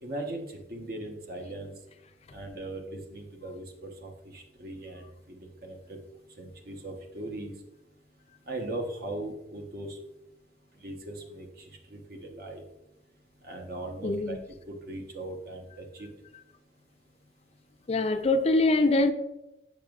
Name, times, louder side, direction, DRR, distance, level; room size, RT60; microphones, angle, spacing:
voice 1, 0.0-1.7 2.3-6.0 6.4-7.5 8.5-10.0 10.8-12.6 13.4-14.4 14.7-16.1, right 1 dB, 55° right, 1.0 m, -39 dB
voice 2, 14.0-14.4 17.9-19.1, left 2 dB, 35° left, 0.4 m, -23 dB
7.0 x 5.9 x 2.4 m
head